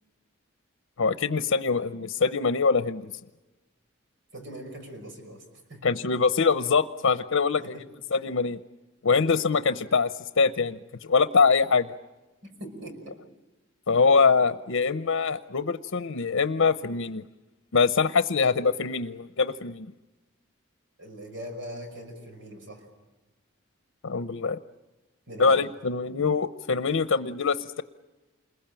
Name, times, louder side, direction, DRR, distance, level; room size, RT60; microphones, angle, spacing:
voice 1, 1.0-3.1 5.8-7.8 8.1-8.6 9.0-10.1 10.4-11.9 13.9-17.2 17.7-19.9 24.0-24.6 25.4-27.8, left 5 dB, 90° left, 11 dB, 0.8 m, -24 dB
voice 2, 4.3-5.4 5.7-5.8 7.5-7.8 9.1-9.3 12.4-13.2 21.0-22.9 25.3-25.6, right 1 dB, 70° right, 5 dB, 5.7 m, -41 dB
28.5 x 21.5 x 9.0 m, 1.1 s
head